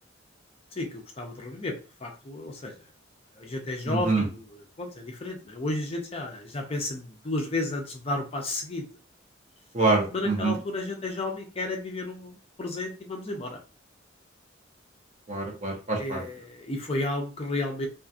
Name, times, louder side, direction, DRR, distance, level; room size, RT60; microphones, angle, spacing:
voice 1, 0.7-1.7 2.0-2.7 3.4-8.9 10.1-13.6 16.0-17.9, left 2 dB, 30° left, 2 dB, 0.5 m, -32 dB
voice 2, 3.9-4.2 9.7-10.5 15.3-16.2, right 3 dB, 40° right, 0 dB, 0.8 m, -25 dB
2.7 x 2.4 x 2.4 m, 0.34 s
head